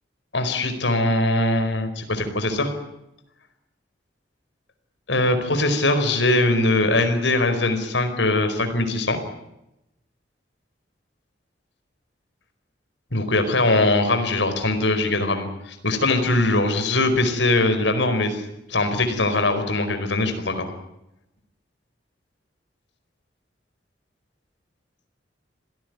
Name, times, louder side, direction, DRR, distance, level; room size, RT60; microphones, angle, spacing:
voice 1, 0.3-2.7 5.1-9.2 13.1-18.4 18.7-20.7, left 2 dB, 85° left, 8 dB, 4.7 m, -21 dB
27.0 x 17.5 x 9.4 m, 0.88 s
head